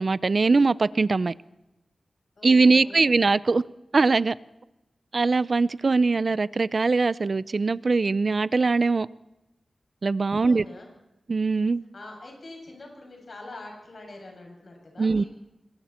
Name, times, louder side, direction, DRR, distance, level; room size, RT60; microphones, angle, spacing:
voice 1, 0.0-1.3 2.4-3.6 3.9-4.4 5.1-9.1 10.0-10.6 11.3-11.8 15.0-15.2, right 3 dB, 45° right, 0.6 m, -21 dB
voice 2, 2.4-3.2 10.4-10.9 11.9-15.3, left 2 dB, 55° left, 7.4 m, -44 dB
26.5 x 22.0 x 4.5 m
wide cardioid pair, 110°, 0 cm